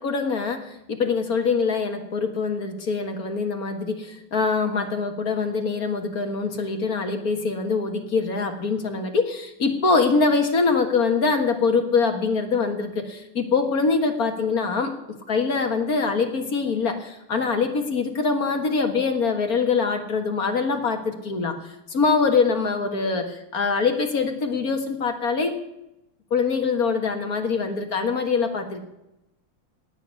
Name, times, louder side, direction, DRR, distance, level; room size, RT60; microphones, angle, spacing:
voice 1, 0.0-21.6 21.9-25.6 26.3-28.8, left 4 dB, 45° left, 5 dB, 1.9 m, -24 dB
18.0 x 7.1 x 9.5 m, 0.88 s
omnidirectional pair, 2.4 m